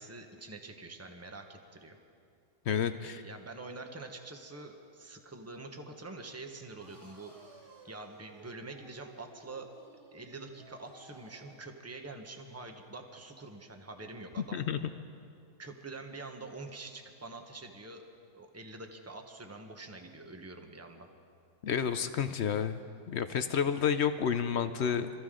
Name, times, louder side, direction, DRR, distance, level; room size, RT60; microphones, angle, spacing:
voice 1, 0.0-2.0 3.0-7.3 7.8-9.7 10.1-14.6 15.6-18.0 18.3-21.1, right 3 dB, 10° right, 4 dB, 0.9 m, -46 dB
voice 2, 2.7-3.2 14.5-14.8 21.6-22.8 23.1-25.1, left 7 dB, 60° left, 10 dB, 0.7 m, -30 dB
sound 1, 6.8-11.7, right 1 dB, 50° right, 3.8 m, -56 dB
25.5 x 14.0 x 3.8 m, 2.4 s
omnidirectional pair, 1.6 m